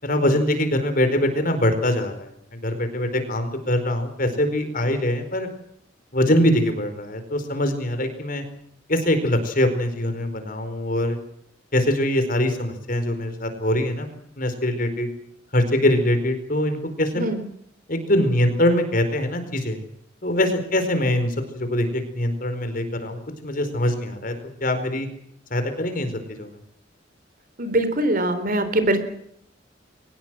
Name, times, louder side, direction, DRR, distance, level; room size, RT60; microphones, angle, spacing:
voice 1, 0.0-5.5 6.1-8.4 8.9-11.2 11.7-14.1 14.4-15.1 15.5-17.2 17.9-19.8 20.2-24.3 24.6-25.1 25.5-26.6, left 1 dB, 50° left, 8 dB, 4.7 m, -23 dB
voice 2, 27.6-29.0, right 1 dB, 50° right, 10 dB, 4.0 m, -22 dB
23.5 x 19.5 x 7.7 m, 0.70 s
head